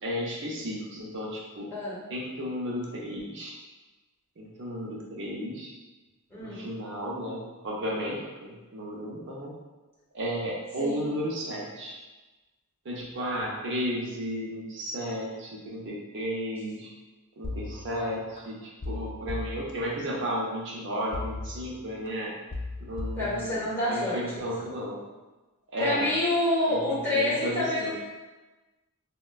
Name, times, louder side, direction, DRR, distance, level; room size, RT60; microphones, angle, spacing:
voice 1, 0.0-1.7 2.1-3.6 4.4-5.7 6.4-9.6 10.1-12.0 12.8-16.9 17.4-22.3 22.9-23.6 23.9-25.0 25.7-26.1 26.7-27.9, equal, 55° right, -4 dB, 0.5 m, -33 dB
voice 2, 6.3-6.7 10.8-11.0 23.2-24.2 25.8-27.9, left 1 dB, 10° left, -9 dB, 1.0 m, -27 dB
sound 1, 17.4-18.4 18.8-20.3 21.1-22.1 22.5-24.0 24.4-24.8, left 2 dB, 35° left, 0.3 m, -38 dB
4.1 x 2.1 x 2.3 m, 1.2 s
head